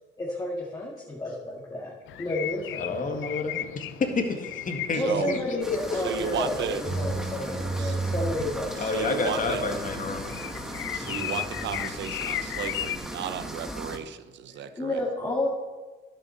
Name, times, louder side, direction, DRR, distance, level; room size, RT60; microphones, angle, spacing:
voice 1, 0.2-3.2 4.9-8.8 14.7-15.5, left 1 dB, 20° left, -4 dB, 2.2 m, -31 dB
sound 1, 2.1-13.0, left 13 dB, 80° left, 0.6 m, -37 dB
voice 2, 2.8-6.0 8.8-10.3, left 3 dB, 40° left, 4 dB, 1.9 m, -29 dB
voice 3, 4.9-5.3 5.9-6.8 7.8-8.0 8.8-9.6 10.9-15.0, right 8 dB, 65° right, 12 dB, 0.7 m, -34 dB
sound 2, 5.6-14.0, equal, 5° right, 1.5 m, -38 dB
sound 3, 6.8-8.3 8.8-11.8 12.1-12.3 12.6-12.8 13.1-13.2, right 3 dB, 40° right, 2.5 m, -35 dB
11.0 x 7.4 x 6.5 m, 1.3 s
cardioid pair, 90°, 20 cm